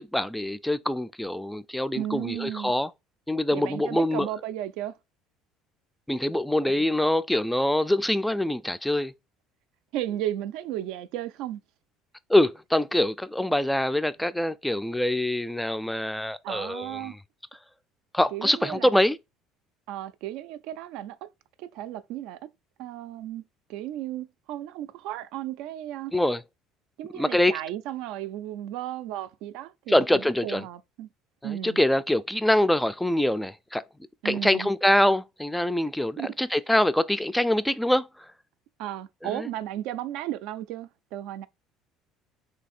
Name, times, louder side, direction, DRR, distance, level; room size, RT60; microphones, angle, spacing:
voice 1, 0.0-2.9 3.3-4.3 6.1-9.1 12.3-17.1 18.1-19.2 26.1-26.4 27.1-27.6 29.9-30.6 31.4-33.8 34.2-38.3 39.2-39.5, left 1 dB, 5° left, 0.3 m, -24 dB
voice 2, 1.9-2.7 3.5-4.9 6.6-6.8 9.9-11.6 16.4-17.2 18.3-18.9 19.9-21.3 21.6-22.4 22.8-23.4 23.7-26.1 27.0-31.1 31.4-31.8 34.2-34.7 36.2-36.3 38.8-41.5, right 12 dB, 75° right, 0.4 m, -34 dB
3.2 x 2.7 x 4.1 m
supercardioid pair, 100°, 0 cm